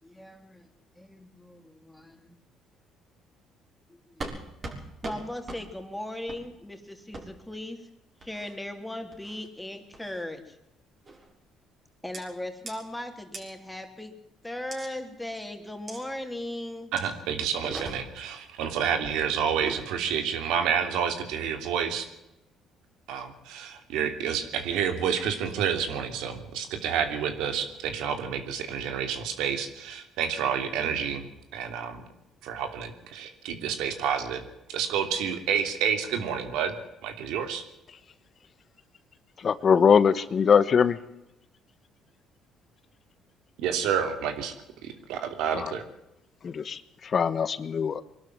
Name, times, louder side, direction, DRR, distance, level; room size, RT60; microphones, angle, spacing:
voice 1, 0.0-0.7 1.0-2.3 4.2-4.3 4.6-7.9 8.2-10.6 12.0-14.2 14.4-16.9, left 1 dB, 5° left, 5 dB, 3.7 m, -38 dB
sound 1, 4.2-4.4 4.6-4.8 5.0-5.2 5.5-5.6 6.3-6.4 7.1-7.2 8.2-8.6 9.1-9.5 9.9-10.2 11.1-11.3 12.1-12.2 12.7-12.8 13.3-13.4 14.7-14.9 15.9-16.0 17.0-17.1 17.5-18.3 19.4-19.8, right 3 dB, 40° right, 6.3 m, -39 dB
voice 2, 16.9-22.1 23.1-31.2 31.5-32.0 32.4-34.4 34.7-36.8 37.0-37.6 43.6-44.5 44.8-45.8, right 7 dB, 80° right, 7 dB, 3.0 m, -29 dB
voice 3, 39.4-41.0 45.6-45.7 46.4-48.0, left 6 dB, 45° left, 14 dB, 1.1 m, -22 dB
22.5 x 12.0 x 9.5 m, 0.90 s
supercardioid pair, 85°, 0 cm